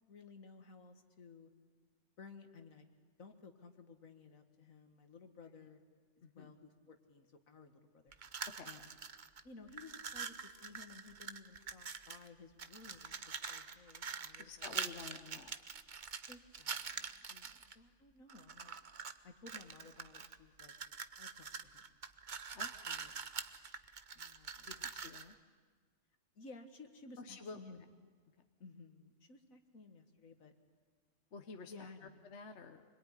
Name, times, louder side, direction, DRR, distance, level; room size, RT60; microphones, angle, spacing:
voice 1, 0.1-1.5 2.2-2.9 3.2-5.8 6.3-8.1 8.6-9.0 9.4-13.1 13.5-15.0 16.3-17.2 17.8-18.7 19.2-20.7 21.2-21.8 22.9-23.1 24.1-24.8 26.4-27.9 28.6-30.5 31.7-32.2, left 4 dB, 70° left, 7 dB, 2.2 m, -56 dB
voice 2, 6.2-6.5 8.5-8.7 14.4-15.5 17.3-17.5 22.5-22.7 24.7-25.3 27.2-27.6 28.4-28.5 31.3-31.7 32.2-32.8, left 4 dB, 55° left, 6 dB, 1.4 m, -50 dB
sound 1, 8.1-9.4 9.7-12.3 12.6-17.7 18.3-19.2 19.5-25.3, right 6 dB, 40° right, 0.9 m, -45 dB
26.0 x 21.5 x 9.9 m, 1.5 s
omnidirectional pair, 1.5 m